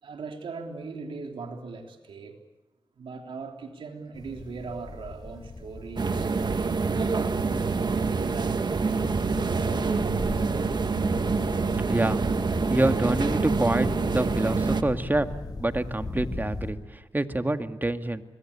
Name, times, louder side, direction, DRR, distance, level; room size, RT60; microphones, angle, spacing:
voice 1, 0.0-2.4 2.9-6.2 6.4-6.9 7.4-11.0 11.8-12.1, right 4 dB, 80° right, 3.5 m, -40 dB
sound 1, 4.1-16.7, left 3 dB, 50° left, 6.9 m, -38 dB
sound 2, 6.0-14.8, right 4 dB, 60° right, 1.8 m, -26 dB
voice 2, 12.7-15.3 15.6-16.8 17.1-18.2, right 2 dB, 20° right, 1.9 m, -26 dB
26.0 x 22.0 x 8.6 m
cardioid pair, 45°, 9 cm